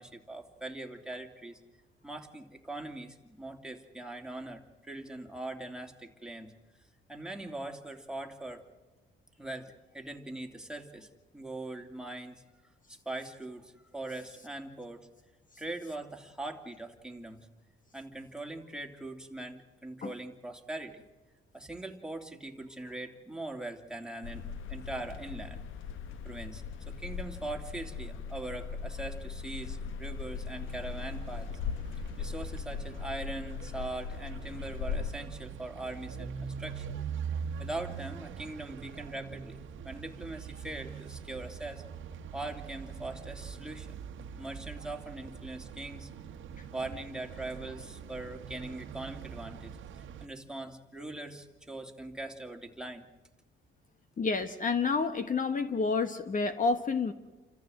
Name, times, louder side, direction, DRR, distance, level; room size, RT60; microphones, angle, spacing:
voice 1, 0.0-1.6 2.0-6.5 7.1-8.6 9.4-12.4 12.9-15.1 15.6-17.5 17.9-21.0 21.5-25.6 26.2-31.5 32.2-37.0 37.6-41.8 42.3-44.0 44.4-46.1 46.7-53.0, right 2 dB, 5° right, 3 dB, 2.8 m, -41 dB
sound 1, 24.2-35.1, left 6 dB, 85° left, 1.1 m, -39 dB
sound 2, 30.7-50.3, right 7 dB, 80° right, 1.4 m, -43 dB
voice 2, 54.2-57.1, left 4 dB, 40° left, 9 dB, 1.3 m, -29 dB
29.0 x 14.5 x 7.8 m, 1.2 s
cardioid pair, 90°, 20 cm